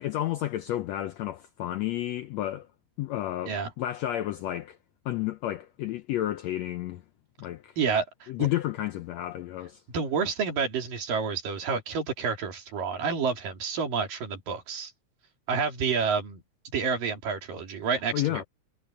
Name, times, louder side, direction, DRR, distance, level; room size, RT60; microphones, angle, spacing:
voice 1, 0.0-2.7 3.0-4.8 5.0-7.0 7.4-7.8 8.3-9.8 18.1-18.4, left 13 dB, 80° left, 1.5 m, -31 dB
voice 2, 7.8-8.3 9.9-14.9 15.5-16.4 16.7-18.4, right 5 dB, 85° right, 4.9 m, -29 dB
omnidirectional pair, 3.8 m